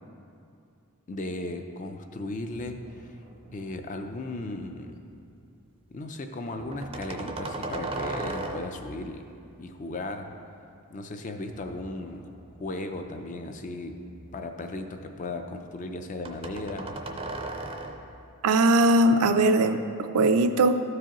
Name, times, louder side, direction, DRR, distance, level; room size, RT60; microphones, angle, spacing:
voice 1, 1.1-3.1 3.5-5.0 5.9-9.2 9.6-10.3 10.9-12.3 12.6-14.0 14.3-16.9, left 2 dB, 35° left, 6 dB, 0.4 m, -36 dB
sound 1, 2.5-3.9 4.3-5.0 6.6-9.0 11.5-13.0 13.5-14.8 16.2-18.2, right 2 dB, 25° right, 0.5 m, -38 dB
voice 2, 18.4-20.8, right 2 dB, 80° right, 9 dB, 0.4 m, -20 dB
13.5 x 4.8 x 3.0 m, 2.5 s
head